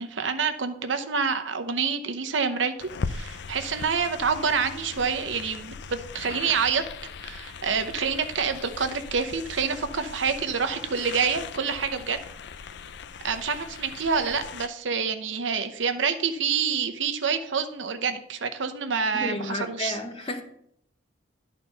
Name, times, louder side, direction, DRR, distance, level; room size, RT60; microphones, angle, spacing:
voice 1, 0.0-6.8 7.2-12.2 13.2-20.0, right 6 dB, 80° right, 0.8 m, -27 dB
sound 1, 2.8-14.7, left 5 dB, 65° left, 0.4 m, -39 dB
voice 2, 19.1-20.4, left 2 dB, 30° left, 0.9 m, -31 dB
11.0 x 4.2 x 5.5 m
head